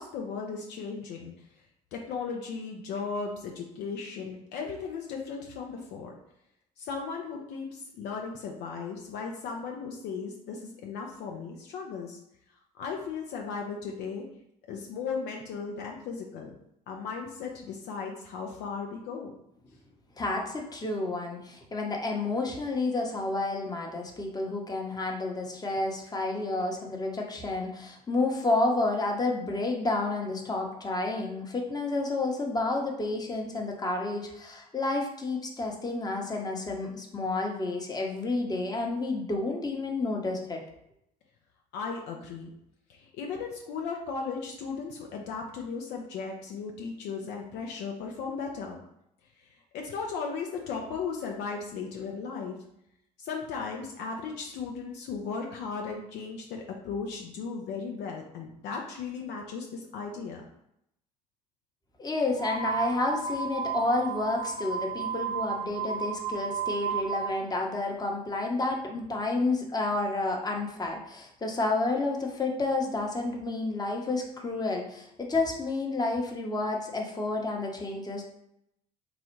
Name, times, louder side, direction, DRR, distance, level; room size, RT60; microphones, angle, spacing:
voice 1, 0.0-1.5 1.9-6.1 6.8-12.2 12.7-14.3 14.7-16.5 16.9-19.3 41.7-42.5 42.9-48.8 49.4-52.6 53.2-60.4, left 5 dB, 60° left, 1 dB, 0.6 m, -36 dB
voice 2, 20.2-40.6 62.0-78.3, left 2 dB, 20° left, 0 dB, 0.9 m, -30 dB
sound 1, 62.3-67.3, right 6 dB, 70° right, 0.7 m, -33 dB
4.0 x 2.4 x 3.1 m, 0.78 s
hypercardioid pair, 60°, 20 cm